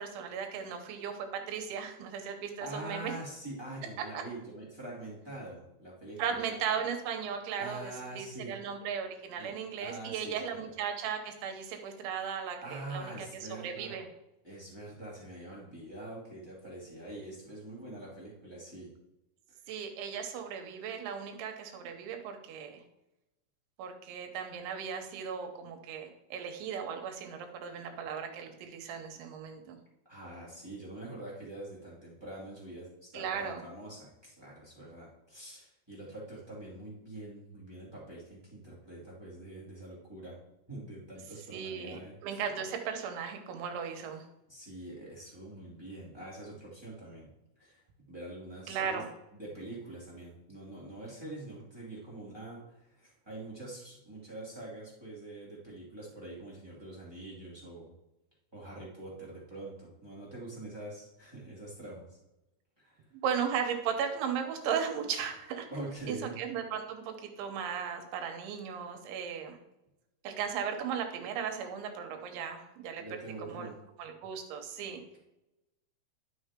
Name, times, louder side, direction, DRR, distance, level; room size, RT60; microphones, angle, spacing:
voice 1, 0.0-3.1 4.1-4.2 6.2-14.1 19.7-22.8 23.8-29.8 33.1-33.6 41.5-44.3 48.7-49.1 63.2-65.7 66.1-69.6 70.2-73.0 73.5-73.7 74.0-75.0, right 7 dB, 85° right, 5 dB, 3.4 m, -36 dB
voice 2, 2.6-6.4 7.6-8.5 9.4-9.5 9.8-10.7 12.6-14.0 14.4-18.9 27.8-28.0 30.0-40.4 40.7-42.1 44.5-47.3 47.6-49.0 49.3-57.9 58.5-62.2 62.8-63.0 65.7-66.3 73.0-73.8 74.8-74.9, right 2 dB, 10° right, -7 dB, 1.4 m, -45 dB
11.5 x 6.1 x 3.7 m, 0.91 s
omnidirectional pair, 5.2 m